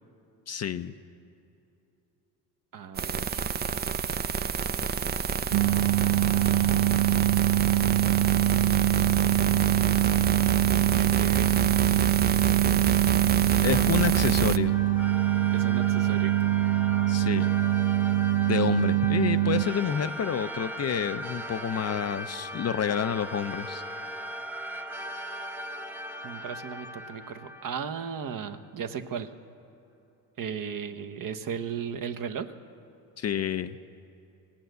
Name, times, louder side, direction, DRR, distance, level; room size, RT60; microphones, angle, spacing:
voice 1, 0.5-0.9 13.6-14.8 17.1-17.5 18.5-23.8 33.2-33.8, left 9 dB, 35° left, 11 dB, 0.5 m, -29 dB
voice 2, 2.7-3.4 6.3-8.1 10.9-11.5 15.5-16.3 26.2-29.3 30.4-32.5, right 7 dB, 45° right, 9 dB, 0.9 m, -36 dB
sound 1, 3.0-14.6, right 7 dB, 25° right, 0.4 m, -28 dB
sound 2, 5.5-19.6, right 14 dB, 80° right, 0.6 m, -24 dB
sound 3, 14.6-28.4, right 1 dB, 5° right, 0.9 m, -38 dB
17.5 x 8.8 x 8.0 m, 2.9 s
supercardioid pair, 75°, 46 cm